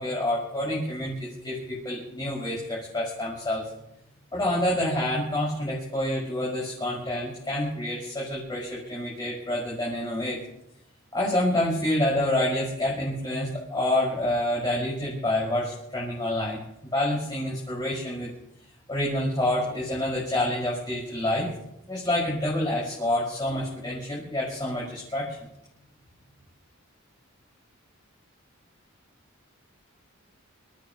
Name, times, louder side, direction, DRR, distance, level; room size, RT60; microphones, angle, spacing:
voice 1, 0.0-3.7 4.3-10.4 11.1-16.6 16.9-18.3 18.9-21.5 21.9-25.4, left 1 dB, 20° left, -6 dB, 5.8 m, -28 dB
28.5 x 15.0 x 3.1 m, 0.80 s
head